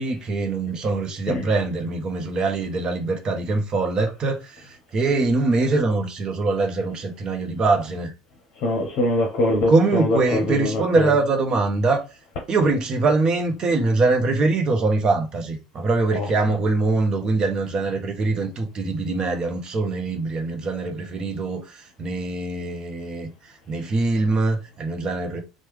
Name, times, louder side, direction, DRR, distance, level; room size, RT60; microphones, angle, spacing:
voice 1, 0.0-8.1 9.7-12.0 12.5-23.3 23.7-25.4, right 3 dB, 35° right, 0.8 m, -23 dB
voice 2, 8.6-11.1 16.1-16.3, left 1 dB, 55° left, 0.7 m, -23 dB
3.0 x 2.1 x 3.1 m
figure-of-eight pair, 70°, 2 cm